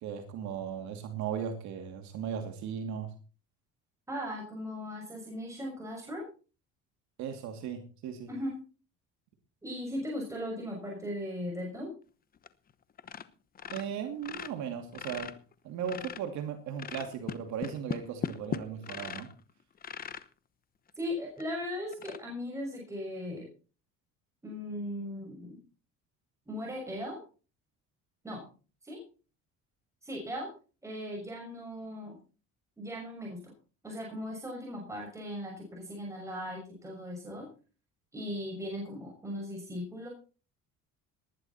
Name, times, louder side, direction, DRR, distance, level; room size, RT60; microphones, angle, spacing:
voice 1, 0.0-3.1 7.2-8.3 13.7-15.3 15.6-19.3, right 8 dB, 70° right, 5 dB, 2.6 m, -37 dB
voice 2, 4.1-6.3 8.3-8.6 9.6-11.9 21.0-23.5 24.4-25.6 26.5-27.2 28.2-28.5 28.8-29.0 30.0-30.5 30.8-32.2 32.8-33.5 33.8-37.5 38.1-40.1, equal, 10° right, -1 dB, 6.2 m, -38 dB
sound 1, 12.4-12.7 13.0-13.3 13.6-16.4 16.8-19.4 19.8-20.3 20.9-21.0 21.4-21.5 21.9-22.2, left 7 dB, 30° left, 1.0 m, -39 dB
19.0 x 11.0 x 4.3 m, 0.37 s
cardioid pair, 140°, 29 cm